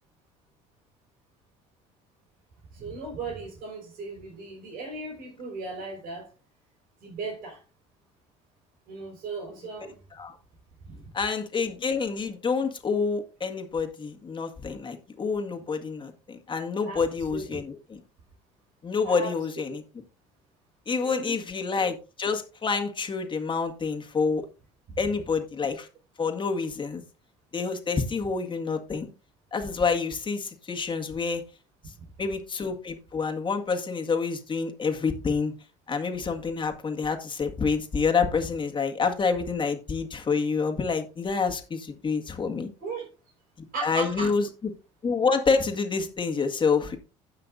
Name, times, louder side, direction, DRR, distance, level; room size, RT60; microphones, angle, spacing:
voice 1, 2.7-6.3 7.0-7.6 8.9-10.0 10.8-11.1 16.8-17.6 19.0-19.4 21.0-21.4 32.0-32.1 42.8-43.1 43.7-44.3, right 3 dB, 60° right, -3 dB, 5.0 m, -37 dB
voice 2, 11.1-18.0 18.8-19.8 20.9-24.5 25.0-25.9 26.2-27.0 27.5-29.1 29.5-31.4 32.2-35.5 35.9-42.7 43.8-44.5 45.0-47.0, left 5 dB, 30° left, 4 dB, 1.9 m, -27 dB
16.0 x 5.9 x 2.6 m, 0.31 s
hypercardioid pair, 70°, 16 cm